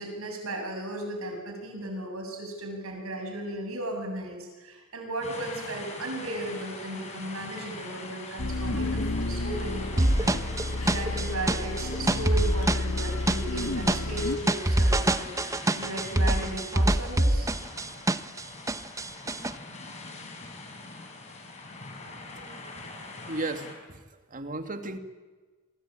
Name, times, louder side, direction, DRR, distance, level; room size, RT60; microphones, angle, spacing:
voice 1, 0.0-15.3 15.7-17.5, right 1 dB, 75° right, 3 dB, 7.3 m, -36 dB
sound 1, 5.2-23.7, left 3 dB, 30° left, 6.3 m, -43 dB
sound 2, 8.4-14.4, left 2 dB, 75° left, 2.2 m, -31 dB
sound 3, 10.0-18.4 18.7-19.5, right 1 dB, 15° right, 0.9 m, -25 dB
voice 2, 22.3-24.0 24.3-25.0, right 2 dB, 40° right, 8 dB, 2.3 m, -36 dB
27.5 x 23.5 x 8.8 m, 1.3 s
head